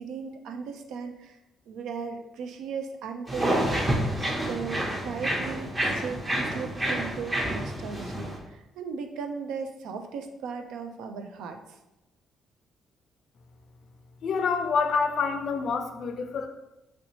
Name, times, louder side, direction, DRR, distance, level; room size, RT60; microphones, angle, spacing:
voice 1, 0.0-1.4 1.7-3.7 4.4-11.8, right 5 dB, 85° right, 6 dB, 0.3 m, -37 dB
sound 1, 3.3-8.4, right 1 dB, 20° right, 0.7 m, -28 dB
voice 2, 14.2-16.5, left 5 dB, 60° left, 7 dB, 0.4 m, -27 dB
3.1 x 2.9 x 2.7 m, 0.95 s
cardioid pair, 90°, 0 cm